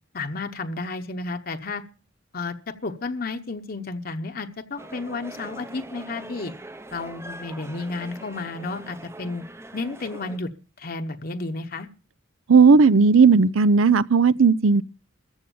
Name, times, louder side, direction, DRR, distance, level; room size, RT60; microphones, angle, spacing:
voice 1, 0.1-1.8 2.3-6.5 6.9-9.4 9.7-10.5 10.8-11.9, left 3 dB, 50° left, 0.9 m, -32 dB
sound 1, 4.8-10.4, right 1 dB, 15° right, 0.6 m, -42 dB
voice 2, 12.5-14.8, right 5 dB, 85° right, 0.6 m, -15 dB
14.5 x 7.8 x 7.0 m
head